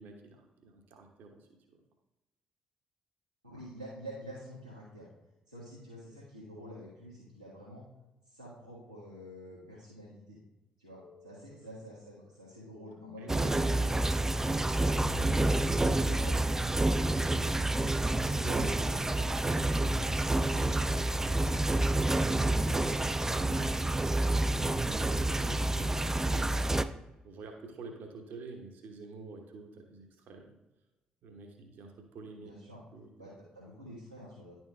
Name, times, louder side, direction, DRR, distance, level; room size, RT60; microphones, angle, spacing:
voice 1, 0.0-1.5 11.5-11.7 13.2-13.9 18.4-21.7 22.3-23.7 24.3-26.6 27.2-30.5 31.2-32.5 32.9-33.1, right 4 dB, 55° right, 4 dB, 1.0 m, -48 dB
voice 2, 3.4-5.1 5.5-7.8 8.2-10.4 10.8-13.6 15.9-16.4 32.4-32.8 33.2-34.5, equal, 85° right, -8 dB, 1.5 m, -48 dB
sound 1, 11.0-18.9, left 10 dB, 50° left, 0.8 m, -52 dB
sound 2, 13.3-26.8, right 2 dB, 10° right, 0.4 m, -28 dB
10.5 x 4.5 x 3.3 m, 1.0 s
figure-of-eight pair, 45°, 4 cm